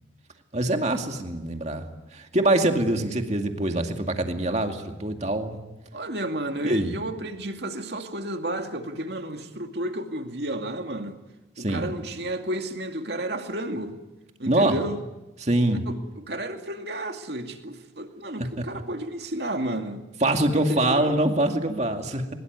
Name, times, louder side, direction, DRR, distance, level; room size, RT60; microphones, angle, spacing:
voice 1, 0.5-1.8 2.1-5.6 6.6-7.0 11.6-11.9 14.5-14.8 15.4-15.9 18.4-18.6 20.2-22.3, right 1 dB, 35° right, 4 dB, 2.3 m, -24 dB
voice 2, 5.9-11.2 11.6-14.0 14.4-15.0 15.9-20.0 20.5-21.1, right 1 dB, 60° right, 5 dB, 2.4 m, -32 dB
22.5 x 21.5 x 9.5 m, 1.0 s
head